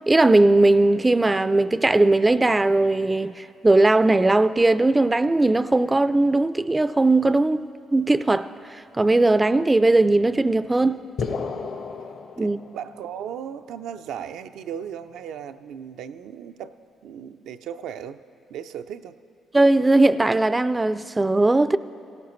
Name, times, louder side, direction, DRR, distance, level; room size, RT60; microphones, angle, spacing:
voice 1, 0.1-7.6 7.9-11.0 12.4-12.6 19.5-21.8, right 2 dB, 15° right, 0.3 m, -19 dB
sound 1, 11.2-13.1, left 5 dB, 65° left, 1.0 m, -32 dB
voice 2, 12.4-16.7 17.0-18.2 18.5-19.2, right 8 dB, 85° right, 0.4 m, -36 dB
18.0 x 16.5 x 3.1 m
cardioid pair, 90°, 0 cm